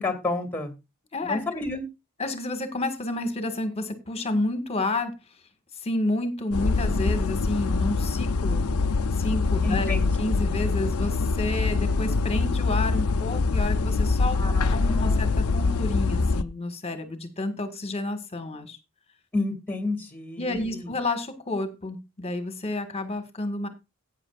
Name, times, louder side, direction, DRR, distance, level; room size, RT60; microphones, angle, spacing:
voice 1, 0.0-0.7 1.2-1.8 9.6-10.1 14.3-15.2 15.6-15.9 19.3-20.9, left 2 dB, 10° left, 6 dB, 2.4 m, -30 dB
voice 2, 1.1-1.4 2.2-5.2 5.8-8.7 9.2-18.8 20.4-23.7, left 2 dB, 30° left, 8 dB, 1.7 m, -30 dB
sound 1, 6.5-16.4, left 3 dB, 85° left, 0.6 m, -24 dB
17.5 x 9.4 x 2.5 m, 0.25 s
head